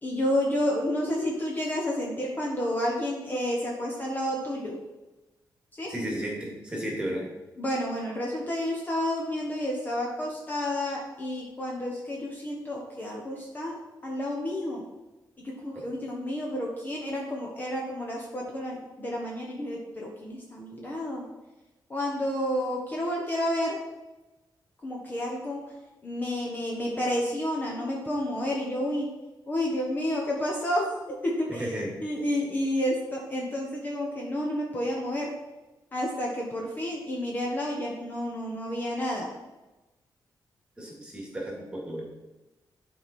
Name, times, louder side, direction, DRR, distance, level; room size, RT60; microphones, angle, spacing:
voice 1, 0.0-4.8 5.7-5.9 7.6-14.8 15.4-21.2 21.9-23.8 24.8-25.6 26.0-29.1 29.5-31.7 32.0-35.3 35.9-39.3, left 1 dB, 25° left, -1 dB, 1.1 m, -30 dB
voice 2, 5.9-7.3 15.7-15.8 31.6-31.9 40.8-42.0, right 1 dB, 10° right, -2 dB, 2.1 m, -33 dB
11.0 x 4.7 x 4.3 m, 1.1 s
wide cardioid pair, 180°, 8 cm